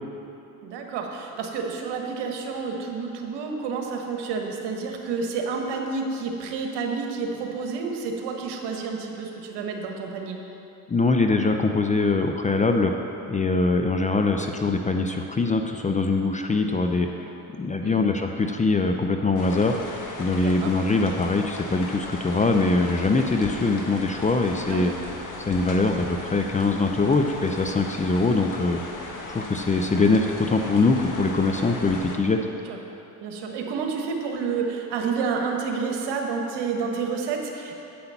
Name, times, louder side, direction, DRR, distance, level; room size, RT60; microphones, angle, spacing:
voice 1, 0.6-10.4 17.8-18.0 20.4-20.7 24.7-24.9 31.2-31.3 32.4-32.8 33.2-37.7, right 5 dB, 65° right, 2 dB, 1.4 m, -30 dB
voice 2, 10.9-12.9 13.3-17.3 17.6-19.8 20.2-24.9 25.4-28.8 29.3-32.4, left 3 dB, 15° left, 4 dB, 0.5 m, -23 dB
sound 1, 19.4-32.2, left 2 dB, 45° left, 1.5 m, -37 dB
8.5 x 5.7 x 7.0 m, 2.9 s
hypercardioid pair, 70°, 45 cm